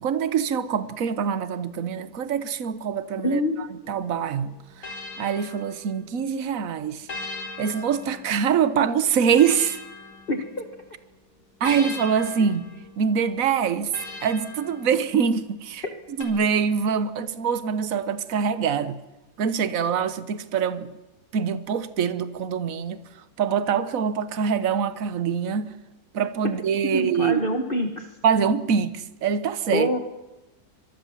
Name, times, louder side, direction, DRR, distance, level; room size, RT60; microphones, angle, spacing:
voice 1, 0.0-7.1 7.6-9.8 11.6-12.7 13.0-13.9 14.2-15.8 16.2-19.0 19.4-20.9 21.3-23.0 23.4-25.8 26.1-27.5 28.2-29.9, right 7 dB, 65° right, 1.5 m, -24 dB
voice 2, 3.2-3.5 10.3-10.7 26.9-28.1 29.7-30.0, left 1 dB, 35° left, 2.0 m, -25 dB
sound 1, 3.8-6.3 7.1-10.9 11.6-15.4 16.2-16.3, left 3 dB, 70° left, 5.0 m, -40 dB
25.0 x 23.0 x 7.4 m
omnidirectional pair, 1.6 m